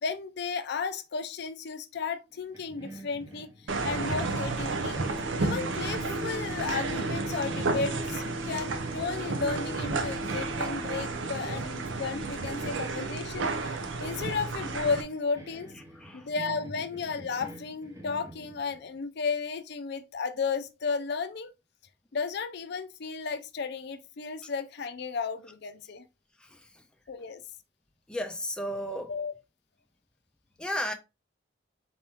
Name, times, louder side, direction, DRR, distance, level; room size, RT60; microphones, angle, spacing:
voice 1, 0.0-3.5 3.8-5.0 5.4-13.5 14.0-15.7 16.1-21.5 22.1-26.0 27.1-27.4 29.1-29.3, left 5 dB, 60° left, 0.5 m, -33 dB
sound 1, 2.5-4.7 5.0-19.0, left 1 dB, 15° right, 0.8 m, -43 dB
sound 2, 3.7-15.0, right 3 dB, 80° right, 0.6 m, -32 dB
voice 2, 16.0-16.3 26.4-26.8 28.1-29.1 30.6-30.9, equal, 5° left, 0.4 m, -34 dB
4.2 x 2.9 x 3.4 m
head